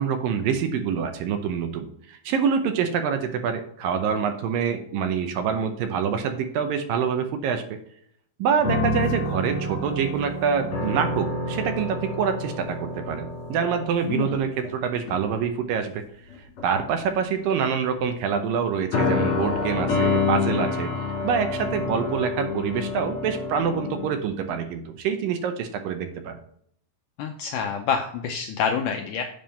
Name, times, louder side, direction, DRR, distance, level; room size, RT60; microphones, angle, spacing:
voice 1, 0.0-7.6 8.4-16.0 16.6-26.4, right 7 dB, 75° right, 7 dB, 2.3 m, -26 dB
sound 1, 8.6-14.7 15.1-15.4 16.3-17.1 18.9-24.1, left 3 dB, 50° left, 3.4 m, -28 dB
voice 2, 14.0-14.4 27.2-29.2, left 6 dB, 85° left, 4 dB, 1.8 m, -27 dB
7.7 x 5.4 x 4.3 m, 0.65 s
omnidirectional pair, 4.3 m